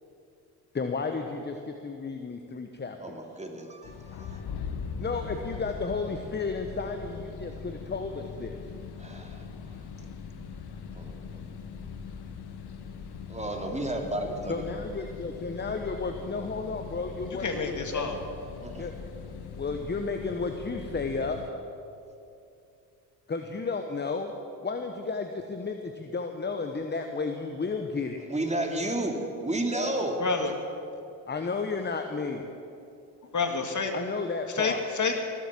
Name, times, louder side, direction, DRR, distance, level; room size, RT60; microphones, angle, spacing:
voice 1, 0.7-3.2 5.0-8.6 14.5-18.1 18.8-18.9 19.5-21.4 23.3-24.3 24.6-28.2 31.3-32.4 33.9-34.8, left 4 dB, 20° left, 6 dB, 1.1 m, -33 dB
voice 2, 3.0-4.4 9.0-9.4 10.9-11.4 13.3-14.6 18.6-18.9 28.3-30.2, right 1 dB, 15° right, 3 dB, 2.5 m, -32 dB
sound 1, 3.8-21.5, left 6 dB, 55° left, 1.3 m, -41 dB
voice 3, 17.4-18.1 30.2-30.5 33.3-33.9 34.6-35.2, left 4 dB, 40° left, 5 dB, 1.9 m, -28 dB
19.0 x 7.7 x 7.4 m, 2.6 s
hypercardioid pair, 60°, 46 cm